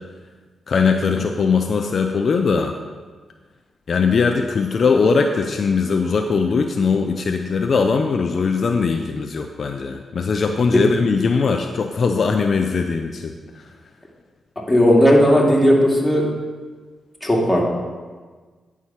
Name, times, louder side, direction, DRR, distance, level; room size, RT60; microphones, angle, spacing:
voice 1, 0.7-2.7 3.9-13.6, left 5 dB, 60° left, 4 dB, 0.5 m, -20 dB
voice 2, 14.7-16.2 17.2-17.6, equal, 10° left, -3 dB, 2.3 m, -15 dB
9.7 x 4.8 x 5.7 m, 1.4 s
cardioid pair, 65°, 0 cm